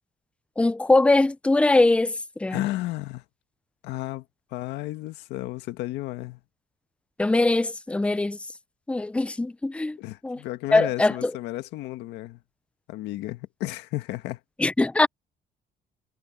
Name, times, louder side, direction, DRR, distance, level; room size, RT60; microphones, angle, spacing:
voice 1, 0.6-2.6 7.2-8.4 8.9-10.0 10.2-10.4 10.7-11.3 14.6-15.1, left 2 dB, 5° left, 0.6 m, -22 dB
voice 2, 2.5-3.2 3.8-4.2 4.5-6.4 10.0-12.4 12.9-14.4, left 17 dB, 90° left, 1.6 m, -33 dB
cardioid pair, 110°, 17 cm